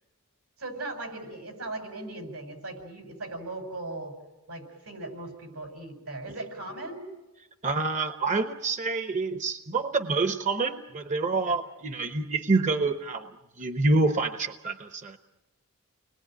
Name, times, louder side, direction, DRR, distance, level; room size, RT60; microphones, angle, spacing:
voice 1, 0.6-4.1 4.5-7.1 11.4-11.6, right 2 dB, 85° right, 4 dB, 6.9 m, -38 dB
voice 2, 7.6-13.3 13.6-15.2, right 3 dB, 35° right, 7 dB, 0.9 m, -27 dB
30.0 x 21.0 x 9.1 m, 1.1 s
head